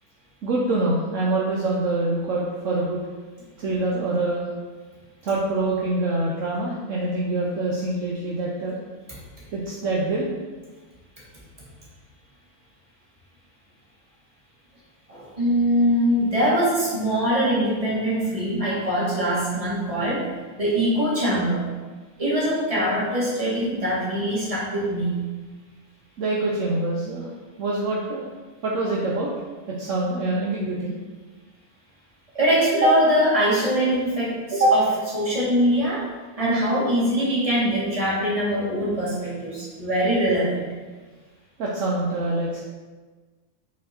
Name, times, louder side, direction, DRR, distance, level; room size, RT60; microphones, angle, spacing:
voice 1, 0.4-3.0 3.6-4.5 5.2-8.8 9.5-10.3 26.2-27.3 27.6-28.2 28.6-29.3 29.7-31.0 41.6-42.6, right 2 dB, 65° right, -4 dB, 1.1 m, -25 dB
voice 2, 15.1-20.3 20.6-21.6 22.2-25.2 32.3-36.0 36.4-40.7, equal, 25° right, -8 dB, 2.0 m, -22 dB
6.0 x 4.3 x 4.4 m, 1.3 s
omnidirectional pair, 1.5 m